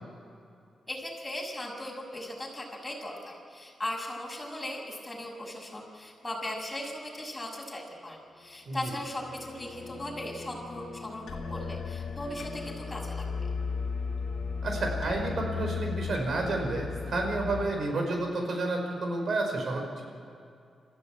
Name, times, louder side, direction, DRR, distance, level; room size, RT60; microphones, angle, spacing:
voice 1, 0.9-13.5, left 1 dB, 15° left, -1 dB, 6.4 m, -38 dB
sound 1, 8.8-17.6, left 5 dB, 75° left, 2.4 m, -36 dB
voice 2, 14.6-19.9, right 2 dB, 65° right, 2 dB, 5.4 m, -30 dB
27.0 x 15.0 x 8.9 m, 2.5 s
cardioid pair, 90°, 0 cm